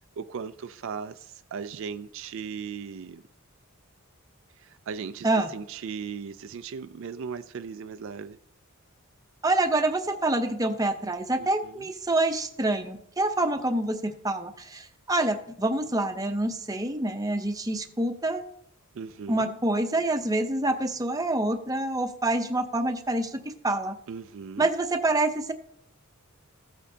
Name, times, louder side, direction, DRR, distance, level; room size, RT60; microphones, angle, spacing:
voice 1, 0.2-3.2 4.6-8.4 11.4-11.9 19.0-19.6 24.1-24.7, right 6 dB, 60° right, 0.3 m, -38 dB
voice 2, 9.4-18.4 19.3-24.0 24.6-25.5, right 2 dB, 15° right, 0.6 m, -26 dB
15.0 x 8.4 x 2.8 m
head